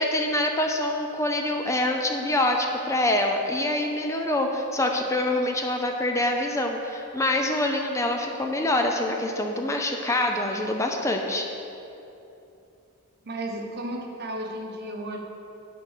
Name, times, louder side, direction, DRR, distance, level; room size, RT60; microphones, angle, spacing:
voice 1, 0.0-11.5, left 1 dB, 15° left, 2 dB, 0.5 m, -25 dB
voice 2, 13.2-15.2, right 1 dB, 50° right, 1 dB, 1.0 m, -33 dB
9.3 x 5.2 x 6.5 m, 2.8 s
head